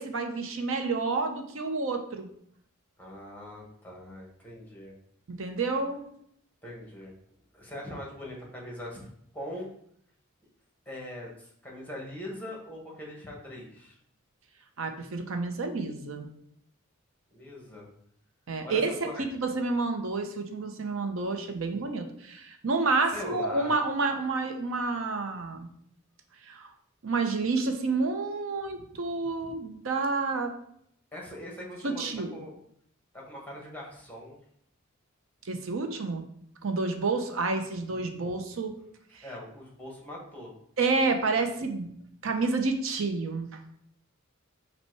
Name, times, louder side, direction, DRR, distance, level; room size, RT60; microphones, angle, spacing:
voice 1, 0.0-2.3 5.3-6.1 14.8-16.3 18.5-25.7 26.4-26.7 27.0-30.5 31.8-32.4 35.4-36.2 36.6-38.8 39.1-39.2 40.8-41.9 42.2-43.6, right 3 dB, 65° right, 5 dB, 0.6 m, -29 dB
voice 2, 3.0-4.9 6.6-7.1 7.5-9.1 9.3-9.7 10.9-14.0 17.3-17.9 18.6-19.5 23.1-23.8 31.1-32.5 33.1-34.4 39.2-40.5, left 1 dB, 10° left, -2 dB, 1.1 m, -41 dB
5.4 x 2.2 x 4.5 m, 0.69 s
head